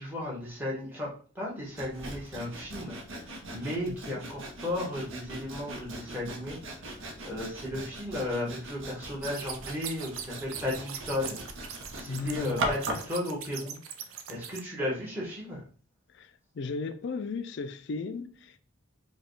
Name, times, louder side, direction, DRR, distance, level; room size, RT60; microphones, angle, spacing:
voice 1, 0.0-11.4 11.9-13.8 14.3-15.6, left 1 dB, 10° right, 1.2 m, -35 dB
Sawing, 1.8-13.1, right 1 dB, 60° right, 0.8 m, -39 dB
voice 2, 3.9-4.2 12.1-12.7 16.1-18.6, left 4 dB, 55° left, 0.4 m, -36 dB
sound 1, 9.2-14.6, right 8 dB, 80° right, 0.5 m, -41 dB
4.9 x 2.3 x 3.1 m
head